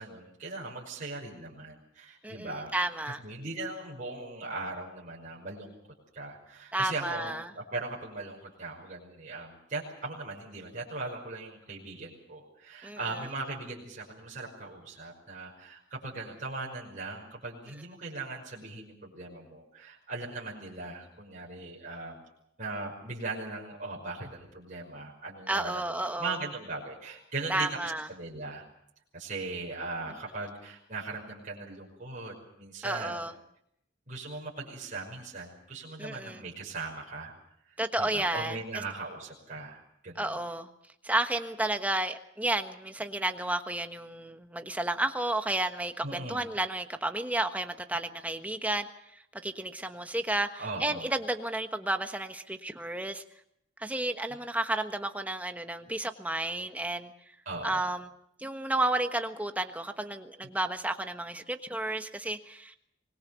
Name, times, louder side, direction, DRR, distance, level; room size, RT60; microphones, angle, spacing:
voice 1, 0.0-2.7 3.0-5.7 6.1-22.2 22.6-28.6 29.1-33.2 34.1-37.3 37.7-40.4 46.0-46.4 50.6-51.1 57.5-57.8, right 3 dB, 40° right, -4 dB, 5.7 m, -39 dB
voice 2, 2.2-3.2 6.7-7.5 12.8-13.0 25.5-26.4 27.5-28.1 32.8-33.3 36.0-36.4 37.8-38.8 40.2-40.7 41.0-48.9 49.3-53.2 53.8-57.1 57.6-58.1 58.4-62.8, right 1 dB, 10° right, 7 dB, 1.3 m, -32 dB
25.0 x 20.5 x 7.0 m, 0.74 s
head